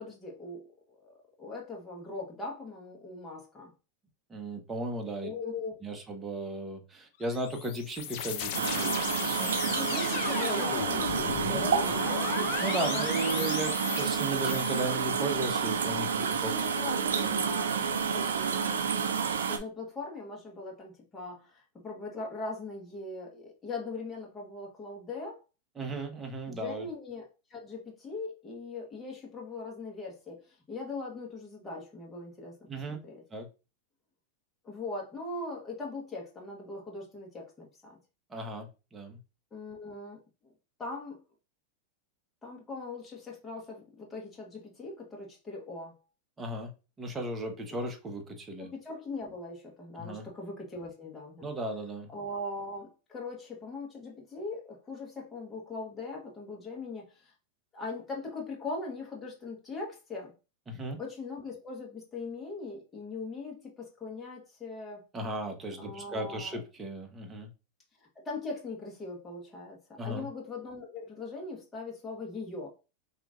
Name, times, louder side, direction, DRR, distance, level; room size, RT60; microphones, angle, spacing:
voice 1, 0.0-3.7 5.2-6.0 9.7-12.3 12.9-13.5 16.1-18.8 19.5-25.4 26.5-32.6 32.9-33.2 34.6-38.0 39.5-40.5 40.8-41.2 42.4-45.9 48.6-51.5 52.1-57.3 57.7-60.3 61.0-65.0 65.8-66.6 68.1-72.7, left 3 dB, 20° left, 1.5 m, -40 dB
voice 2, 4.3-5.3 5.8-9.8 12.4-16.5 17.2-17.4 25.8-26.9 32.7-33.0 33.3-33.5 38.3-39.2 46.4-46.7 47.0-48.7 50.0-50.3 51.4-52.1 60.7-61.0 65.1-67.5 70.0-70.3, right 1 dB, 20° right, 1.0 m, -36 dB
sound 1, 7.2-14.8, left 8 dB, 55° left, 0.8 m, -36 dB
sound 2, 8.5-19.6, right 6 dB, 90° right, 0.5 m, -29 dB
5.0 x 3.0 x 2.5 m
hypercardioid pair, 115°, 0 cm